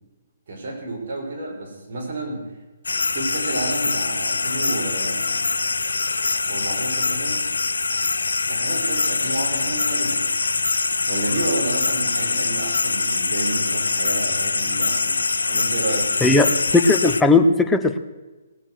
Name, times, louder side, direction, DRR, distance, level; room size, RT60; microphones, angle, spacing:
voice 1, 0.5-2.4 3.1-5.5 6.5-7.4 8.5-10.3 11.1-15.2 15.5-16.4, right 2 dB, 55° right, -1 dB, 5.6 m, -30 dB
sound 1, 2.8-17.2, left 4 dB, 85° left, 0.6 m, -23 dB
voice 2, 16.7-18.0, left 3 dB, 5° left, 6 dB, 1.0 m, -16 dB
19.0 x 9.0 x 6.4 m, 1.2 s
hypercardioid pair, 145°, 0 cm